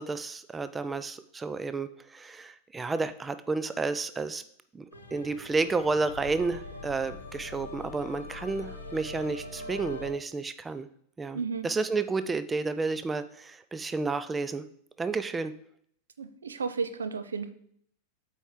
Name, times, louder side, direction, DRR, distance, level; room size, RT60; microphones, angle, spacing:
voice 1, 0.0-4.4 4.7-4.8 5.1-10.9 11.2-14.6 15.0-15.5, right 3 dB, 15° right, 13 dB, 0.4 m, -31 dB
sound 1, 4.9-10.1, left 2 dB, 80° left, 1.0 m, -42 dB
voice 2, 11.3-11.7 16.2-17.5, right 5 dB, 70° right, 11 dB, 0.5 m, -33 dB
8.2 x 4.5 x 3.6 m, 0.66 s
figure-of-eight pair, 90°, 0 cm